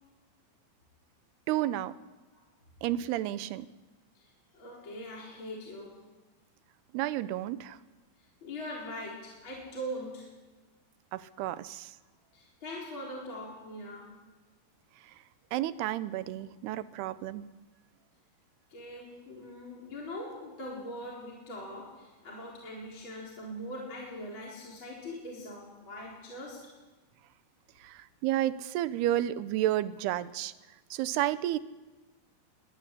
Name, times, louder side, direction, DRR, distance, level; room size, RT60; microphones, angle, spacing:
voice 1, 1.5-2.0 2.8-3.7 6.9-7.8 11.1-11.9 15.5-17.4 27.8-30.5 30.9-31.6, right 13 dB, 90° right, 14 dB, 2.9 m, -31 dB
voice 2, 4.1-6.0 8.2-10.3 12.3-14.2 18.7-26.7 30.9-31.0, equal, 30° left, -3 dB, 4.5 m, -42 dB
23.0 x 15.0 x 9.9 m, 1.2 s
omnidirectional pair, 4.5 m